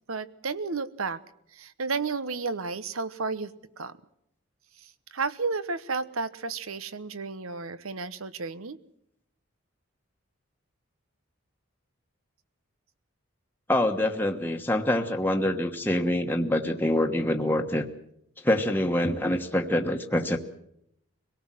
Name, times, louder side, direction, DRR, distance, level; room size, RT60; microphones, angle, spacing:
voice 1, 0.1-1.2 1.5-3.5 3.8-3.9 5.1-8.8, right 4 dB, 80° right, 14 dB, 1.1 m, -32 dB
voice 2, 13.7-17.8 18.4-20.4, left 1 dB, 10° left, 3 dB, 1.2 m, -25 dB
25.5 x 18.0 x 7.6 m, 0.77 s
head